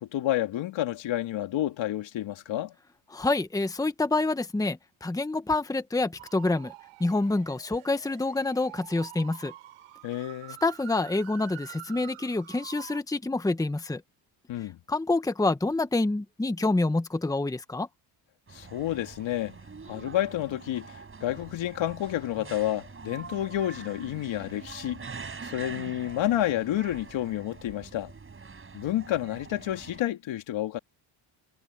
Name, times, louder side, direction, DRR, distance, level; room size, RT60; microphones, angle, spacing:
voice 1, 0.0-2.7 10.0-10.6 14.5-14.8 18.5-19.5 19.9-25.0 25.4-28.1 28.7-30.8, left 13 dB, 70° left, 2.6 m, -30 dB
voice 2, 3.1-6.7 7.0-9.5 10.6-14.0 14.9-17.9, left 2 dB, 5° left, 1.2 m, -27 dB
sound 1, 6.2-13.0, right 17 dB, 90° right, 5.7 m, -47 dB
sound 2, 18.5-30.0, right 4 dB, 25° right, 6.0 m, -44 dB
cardioid pair, 110°, 48 cm